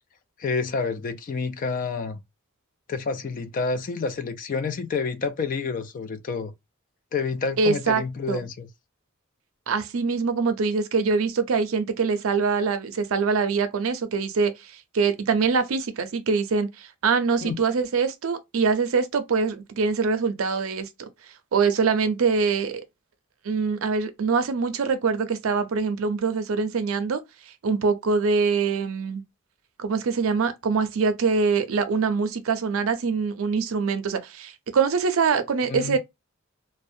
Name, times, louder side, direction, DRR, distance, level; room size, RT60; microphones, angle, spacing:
voice 1, 0.4-2.2 2.9-6.5 7.1-8.7 17.4-17.6 35.7-36.0, left 4 dB, 40° left, 0.3 m, -29 dB
voice 2, 7.6-8.0 8.3-8.5 9.7-21.1 21.5-22.8 23.4-27.2 27.6-29.2 29.8-36.0, right 5 dB, 75° right, 0.5 m, -24 dB
2.3 x 2.1 x 2.6 m
head